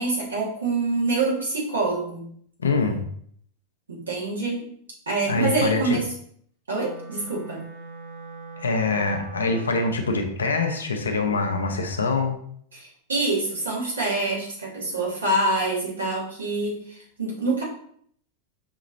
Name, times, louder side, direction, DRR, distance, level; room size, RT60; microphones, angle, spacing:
voice 1, 0.0-2.2 3.9-4.7 5.1-6.1 6.7-7.6 12.7-17.6, right 2 dB, 70° right, -4 dB, 1.4 m, -26 dB
voice 2, 2.6-3.0 5.3-6.0 8.6-12.4, left 3 dB, 70° left, 4 dB, 0.6 m, -24 dB
Wind instrument woodwind instrument, 6.7-10.1, right 3 dB, 55° right, 0.9 m, -41 dB
5.2 x 2.9 x 2.6 m, 0.63 s
figure-of-eight pair, 90°, 0 cm